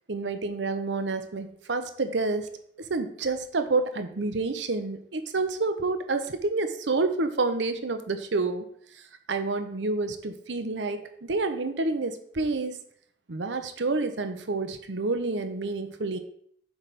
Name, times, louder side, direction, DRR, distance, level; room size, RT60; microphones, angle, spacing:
voice 1, 0.1-2.5 2.8-8.7 9.3-12.8 13.3-16.2, right 3 dB, 85° right, 8 dB, 0.8 m, -28 dB
8.0 x 3.5 x 5.8 m, 0.65 s
head